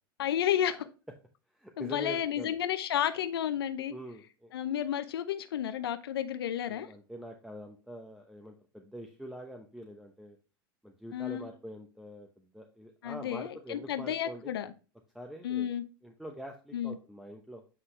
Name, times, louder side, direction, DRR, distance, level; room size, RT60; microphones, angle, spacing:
voice 1, 0.2-0.9 1.8-3.9 4.5-6.9 11.1-11.5 13.0-14.7 15.4-15.8 16.7-17.0, left 10 dB, 85° left, 0.7 m, -32 dB
voice 2, 1.5-2.6 3.9-4.5 6.7-10.4 10.8-14.5 15.1-15.7 16.0-17.6, equal, 5° right, 0.8 m, -45 dB
7.9 x 4.1 x 3.2 m
hypercardioid pair, 110°, 12 cm